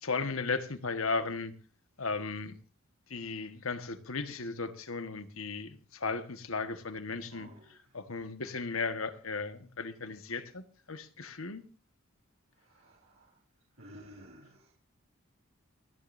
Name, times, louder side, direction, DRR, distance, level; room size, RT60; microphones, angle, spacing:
voice 1, 0.0-1.5 2.0-2.5 3.1-7.5 7.9-10.6 10.9-11.6, left 4 dB, 80° left, 1.5 m, -35 dB
voice 2, 7.2-7.9 12.5-13.4 13.7-14.7, equal, 75° right, 4.6 m, -54 dB
29.5 x 10.5 x 2.7 m
head